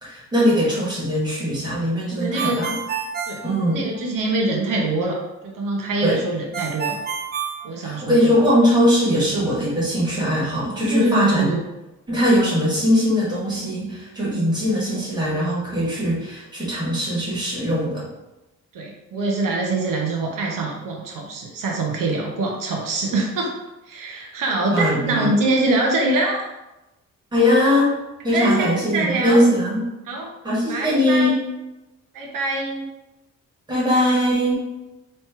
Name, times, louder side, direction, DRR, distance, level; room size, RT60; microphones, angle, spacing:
voice 1, 0.0-2.7 3.4-3.8 6.0-6.2 7.8-11.5 12.1-18.1 24.7-25.3 27.3-27.9 28.2-29.9 30.4-31.4 33.7-34.6, equal, 15° right, -8 dB, 1.4 m, -20 dB
voice 2, 2.2-2.6 3.3-3.4 3.7-7.0 7.6-8.4 10.7-11.6 18.7-23.6 23.9-26.5 28.3-29.4 30.1-30.3 30.7-31.3 32.1-32.9, right 2 dB, 80° right, 0 dB, 0.8 m, -24 dB
Ringtone, 2.4-4.3 6.5-8.4, right 7 dB, 30° right, 0.4 m, -29 dB
3.2 x 2.9 x 4.4 m, 1.0 s
wide cardioid pair, 170°, 33 cm